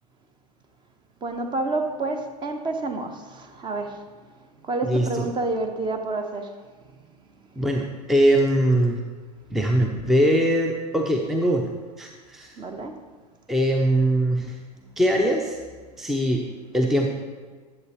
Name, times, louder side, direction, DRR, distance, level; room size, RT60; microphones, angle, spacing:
voice 1, 1.2-4.0 4.6-6.5 12.6-12.9, right 2 dB, 20° right, 5 dB, 0.9 m, -29 dB
voice 2, 4.8-5.3 7.6-9.0 9.5-11.7 12.0-12.6 13.5-14.6 15.0-15.6 16.0-16.4 16.7-17.1, right 1 dB, ahead, 2 dB, 0.6 m, -21 dB
10.5 x 7.5 x 3.0 m, 1.5 s
figure-of-eight pair, 90°, 20 cm